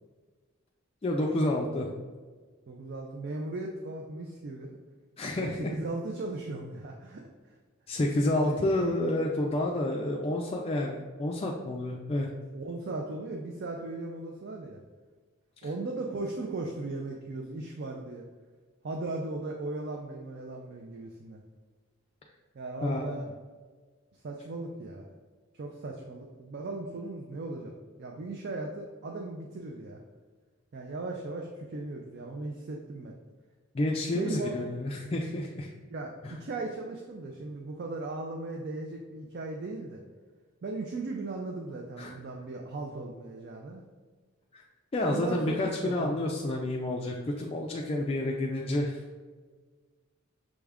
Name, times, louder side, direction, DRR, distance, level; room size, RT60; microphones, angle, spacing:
voice 1, 1.0-1.9 5.2-5.7 7.9-12.3 22.8-23.2 33.7-35.7 36.2-36.3 42.0-42.1 44.5-44.6 44.9-49.0, left 1 dB, 30° left, -1 dB, 0.3 m, -29 dB
voice 2, 2.7-4.8 5.4-7.5 8.4-8.6 12.5-14.8 15.6-18.2 18.8-21.4 22.5-23.3 24.2-25.0 25.5-27.7 28.0-30.0 30.7-33.1 34.1-34.6 35.9-40.0 40.6-43.8 45.0-46.1, right 2 dB, 50° right, 1 dB, 0.4 m, -37 dB
6.2 x 2.4 x 3.4 m, 1.4 s
head